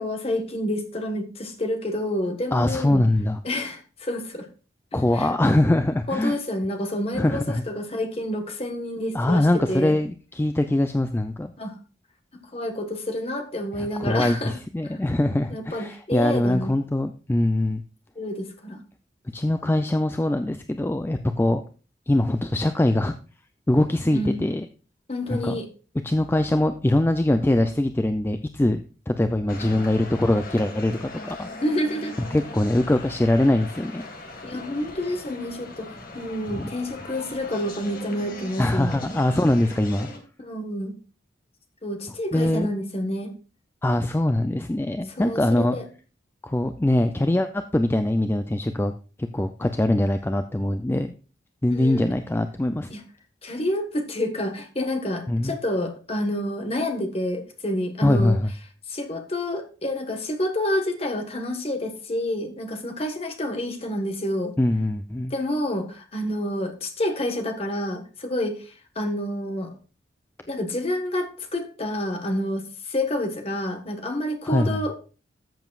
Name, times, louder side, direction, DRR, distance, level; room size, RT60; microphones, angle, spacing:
voice 1, 0.0-3.0 3.4-4.5 5.1-5.3 6.1-9.9 11.6-11.7 12.5-14.5 14.8-15.0 15.5-16.7 18.1-18.8 24.1-24.4 25.1-25.7 31.6-32.1 34.4-39.0 40.4-40.9 41.8-43.3 45.1-45.9 51.7-52.1 52.9-53.0 53.4-58.4 58.9-64.5 65.3-69.7 70.5-75.0, left 1 dB, 35° left, 5 dB, 1.4 m, -28 dB
voice 2, 2.5-3.4 4.9-6.4 7.2-7.6 9.1-11.5 13.8-17.8 19.3-21.6 22.1-23.1 23.7-24.7 25.3-25.5 26.0-31.5 32.3-34.0 36.5-36.7 38.6-40.1 42.3-42.7 43.8-45.8 46.4-48.9 49.2-51.1 51.6-52.9 55.3-55.6 58.0-58.5 64.6-65.3 74.4-74.8, left 1 dB, 15° left, 8 dB, 0.4 m, -22 dB
sound 1, 29.5-40.2, left 2 dB, 55° left, 1.9 m, -39 dB
13.5 x 7.1 x 2.4 m, 0.36 s
head